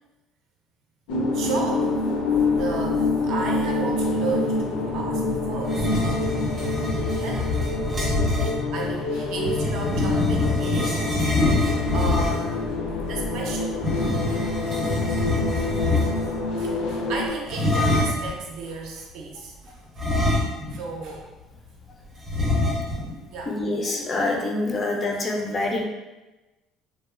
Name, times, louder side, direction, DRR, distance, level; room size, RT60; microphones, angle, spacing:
sound 1, 1.1-17.3, left 3 dB, 85° left, 0.4 m, -26 dB
voice 1, 1.3-2.0 2.6-7.5 8.7-11.3 11.9-12.7 13.0-13.7 15.2-20.0 20.7-21.2 23.3-23.5, right 3 dB, 65° right, 0 dB, 0.5 m, -34 dB
sound 2, 5.6-8.6 9.4-12.6 13.8-16.4 17.5-18.3 20.0-20.9 21.2-21.3 22.3-23.1, left 2 dB, 25° right, 0.7 m, -25 dB
voice 2, 23.5-25.8, left 2 dB, 20° left, 0 dB, 0.3 m, -26 dB
2.9 x 2.1 x 2.4 m, 1.1 s
cardioid pair, 165°, 0 cm